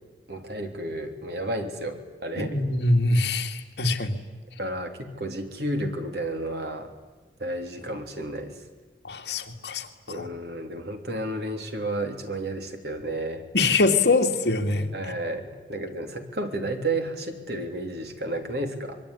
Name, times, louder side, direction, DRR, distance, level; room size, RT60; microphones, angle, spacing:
voice 1, 0.3-2.6 4.6-6.9 7.4-8.5 10.1-13.4 14.9-19.0, right 1 dB, 60° right, 5 dB, 3.3 m, -32 dB
voice 2, 2.4-4.2 9.0-10.3 13.5-15.1, left 3 dB, 70° left, 4 dB, 2.4 m, -24 dB
26.0 x 22.5 x 9.9 m, 1.2 s
head